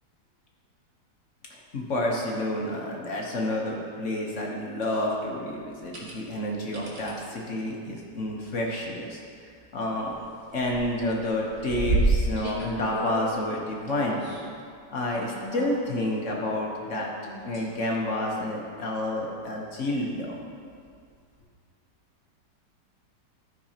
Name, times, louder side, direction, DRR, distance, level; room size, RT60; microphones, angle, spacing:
voice 1, 1.5-9.2 9.7-10.1 10.5-14.2 14.9-17.1 17.4-20.4, left 1 dB, 50° left, -1 dB, 1.2 m, -29 dB
sound 1, 4.8-5.0 5.7-6.1 6.7-7.1 8.3-8.6 9.0-9.1 9.4-10.3 10.6-13.3 13.9-14.4 15.1-16.0 17.2-17.8 18.3-18.4 20.7-20.8, right 2 dB, 40° right, 1.5 m, -30 dB
13.0 x 6.0 x 2.8 m, 2.2 s
omnidirectional pair, 1.9 m